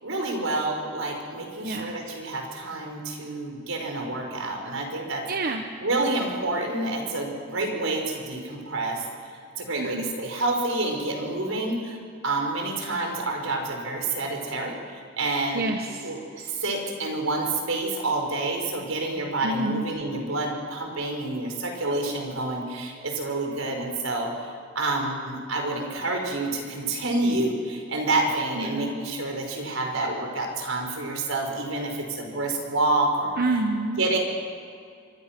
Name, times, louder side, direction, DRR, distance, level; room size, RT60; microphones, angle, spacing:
voice 1, 0.0-5.2 5.8-9.0 9.6-12.0 12.2-15.6 16.0-33.3 34.0-34.2, right 2 dB, 85° right, 2 dB, 5.0 m, -28 dB
voice 2, 1.6-1.9 5.3-5.6 9.8-10.1 15.5-16.1 19.4-19.9 28.6-28.9 33.4-34.0, right 2 dB, 50° right, 4 dB, 1.2 m, -28 dB
25.5 x 23.5 x 6.1 m, 2.4 s
head